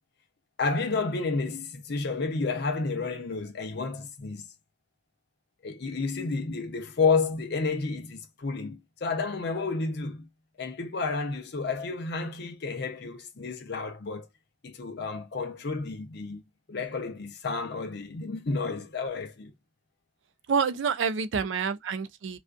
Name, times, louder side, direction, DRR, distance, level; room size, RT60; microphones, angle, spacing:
voice 1, 0.6-4.5 5.6-10.3 10.6-14.3 14.6-16.4 16.7-19.5, left 4 dB, 60° left, 0.6 m, -31 dB
voice 2, 20.5-22.4, right 6 dB, 70° right, 0.4 m, -28 dB
2.4 x 2.3 x 2.3 m
head